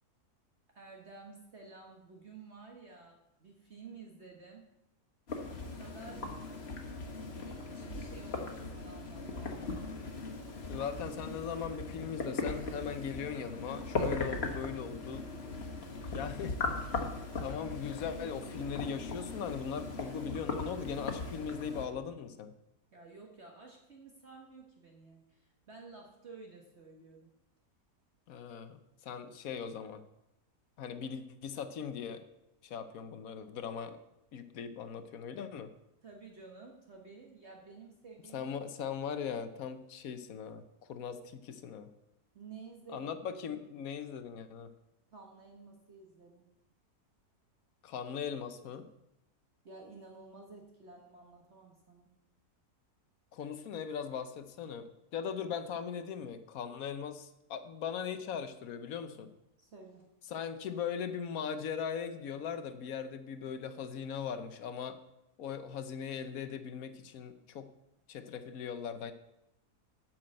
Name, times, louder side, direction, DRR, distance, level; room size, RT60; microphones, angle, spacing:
voice 1, 0.7-4.6 5.6-6.3 7.3-10.0 22.9-27.3 36.0-38.5 42.3-43.1 43.5-43.6 45.1-46.5 49.6-52.1 59.6-60.1, right 4 dB, 45° right, 0 dB, 1.4 m, -52 dB
sound 1, 5.3-21.9, left 3 dB, 45° left, 1.5 m, -39 dB
voice 2, 10.7-15.3 16.1-16.6 17.4-22.5 28.3-30.0 30.8-32.2 32.6-34.0 34.3-35.7 38.3-41.9 42.9-44.7 47.8-48.9 53.3-59.3 60.3-65.0 65.4-67.7 68.1-69.1, left 7 dB, 65° left, 10 dB, 1.2 m, -39 dB
8.8 x 6.1 x 7.6 m, 0.87 s
omnidirectional pair, 1.6 m